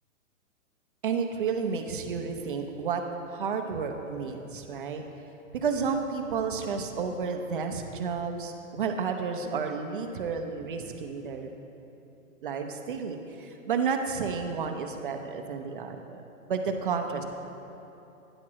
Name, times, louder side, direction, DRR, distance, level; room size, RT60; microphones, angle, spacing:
voice 1, 1.0-5.0 5.5-11.5 12.4-16.2 16.5-17.2, right 5 dB, 40° right, 5 dB, 0.5 m, -31 dB
9.8 x 4.6 x 6.0 m, 3.0 s
hypercardioid pair, 165°, 42 cm